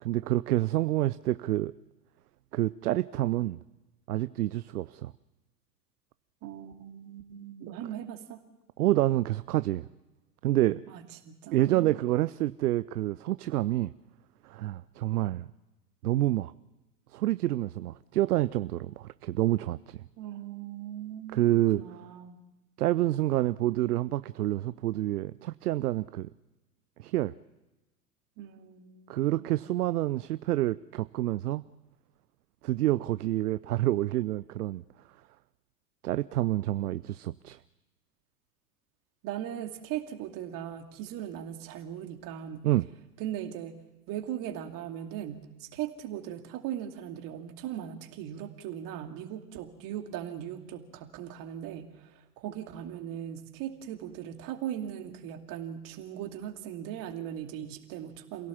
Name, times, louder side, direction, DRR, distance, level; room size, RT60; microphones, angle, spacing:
voice 1, 0.0-1.7 2.5-3.6 4.1-5.1 8.8-9.9 10.4-10.8 11.5-13.9 14.4-15.5 16.0-16.5 17.1-20.0 21.3-21.8 22.8-26.3 27.0-27.3 29.1-31.6 32.6-34.8 36.0-37.6 42.6-42.9, right 15 dB, 65° right, 16 dB, 0.7 m, -28 dB
voice 2, 6.4-8.4 10.9-11.9 20.2-21.4 21.8-22.4 28.4-29.6 39.2-42.7 43.2-43.8 44.1-58.5, right 10 dB, 40° right, 5 dB, 2.6 m, -39 dB
27.5 x 17.0 x 7.3 m, 1.1 s
figure-of-eight pair, 95°, 49 cm